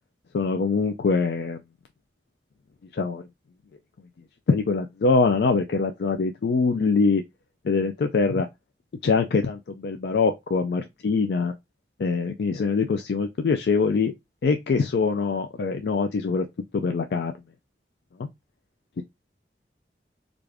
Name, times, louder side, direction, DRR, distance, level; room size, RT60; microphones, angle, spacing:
voice 1, 0.3-1.6 2.9-3.3 4.5-7.2 7.6-8.5 9.0-11.5 12.0-14.1 14.4-16.5 16.7-17.3 18.2-18.3 19.0-19.1, left 4 dB, 70° left, 0.4 m, -23 dB
3.5 x 2.5 x 3.3 m
head